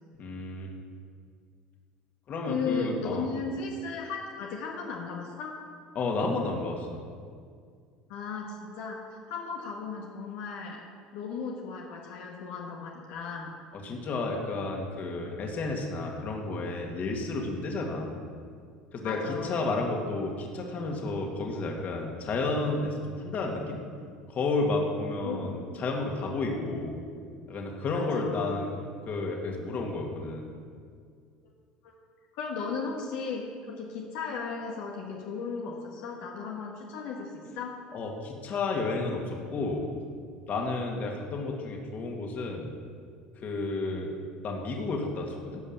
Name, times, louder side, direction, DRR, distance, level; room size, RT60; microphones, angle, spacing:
voice 1, 0.2-0.7 2.3-3.3 5.9-7.0 13.8-18.2 18.9-23.8 24.3-27.0 27.5-28.7 29.1-30.5 37.9-39.9 40.5-42.7 43.4-44.1 44.4-45.6, left 3 dB, 45° left, 1 dB, 2.4 m, -31 dB
voice 2, 2.4-5.6 8.1-10.8 11.1-13.5 19.0-19.6 25.2-25.6 27.9-28.5 31.8-31.9 32.3-37.8, left 5 dB, 75° left, -1 dB, 1.7 m, -36 dB
16.5 x 5.6 x 7.5 m, 2.1 s
supercardioid pair, 100°, 4 cm